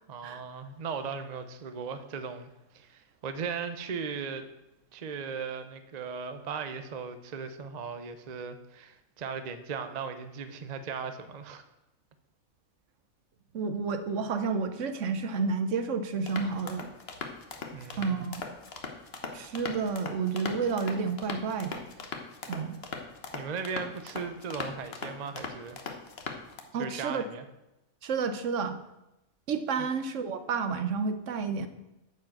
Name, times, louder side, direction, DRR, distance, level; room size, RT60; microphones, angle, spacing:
voice 1, 0.1-4.4 4.9-11.6 17.7-18.2 23.3-25.8 26.7-27.4 29.8-29.9, right 5 dB, 45° right, 9 dB, 0.6 m, -37 dB
voice 2, 13.5-16.9 18.0-18.4 19.3-21.8 22.5-22.8 26.7-27.3 28.0-28.8 29.5-31.7, right 5 dB, 65° right, 10 dB, 1.0 m, -30 dB
sound 1, 16.3-26.6, left 4 dB, 50° left, 1.2 m, -40 dB
9.3 x 4.8 x 7.6 m, 0.94 s
omnidirectional pair, 1.5 m